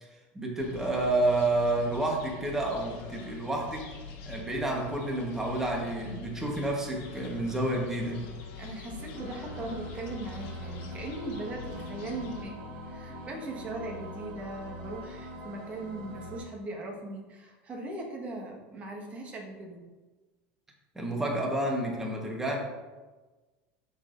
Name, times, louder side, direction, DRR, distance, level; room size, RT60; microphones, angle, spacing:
voice 1, 0.3-3.9 4.3-8.2 20.9-22.6, right 2 dB, 10° right, -1 dB, 1.2 m, -29 dB
sound 1, 0.6-12.4, left 4 dB, 65° left, 1.4 m, -45 dB
voice 2, 8.5-12.6 12.9-19.8, right 2 dB, 30° right, 0 dB, 1.4 m, -39 dB
sound 2, 9.1-16.4, equal, 75° right, 1.9 m, -43 dB
12.0 x 4.0 x 2.6 m, 1.3 s
supercardioid pair, 135°, 5 cm